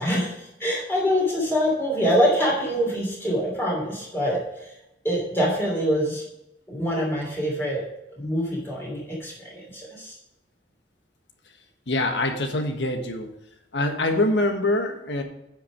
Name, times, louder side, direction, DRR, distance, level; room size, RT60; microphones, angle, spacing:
voice 1, 0.0-4.7 5.0-6.2 6.7-7.8 8.2-10.2, equal, 15° left, -4 dB, 3.0 m, -25 dB
voice 2, 11.9-13.3 13.7-15.2, left 1 dB, 85° left, 5 dB, 1.4 m, -24 dB
9.8 x 6.0 x 5.0 m, 0.85 s
head